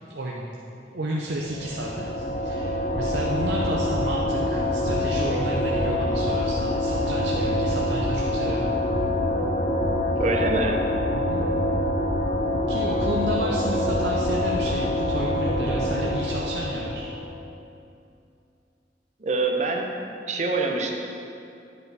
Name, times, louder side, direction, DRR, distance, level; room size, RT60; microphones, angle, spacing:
voice 1, 0.1-0.5 0.9-8.7 11.1-11.4 12.7-17.1, right 1 dB, 85° right, -3 dB, 0.7 m, -32 dB
sound 1, 1.4-17.3, left 1 dB, 40° left, 0.9 m, -25 dB
voice 2, 10.2-10.8 19.2-20.9, right 3 dB, 40° right, 2 dB, 0.8 m, -25 dB
9.8 x 5.3 x 4.7 m, 2.6 s
head